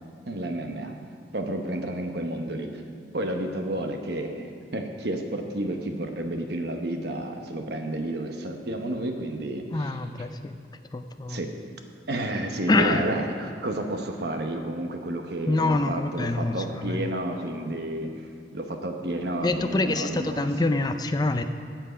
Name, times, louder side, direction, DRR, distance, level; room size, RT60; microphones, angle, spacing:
voice 1, 0.3-0.9 1.3-2.7 3.1-10.0 11.3-11.5 12.1-18.1 18.5-20.4, right 1 dB, 65° right, 4 dB, 1.0 m, -31 dB
voice 2, 9.7-10.6 10.9-11.4 12.7-13.1 15.5-17.0 19.4-21.4, left 2 dB, 25° left, 8 dB, 0.4 m, -26 dB
13.5 x 7.6 x 5.0 m, 2.3 s
head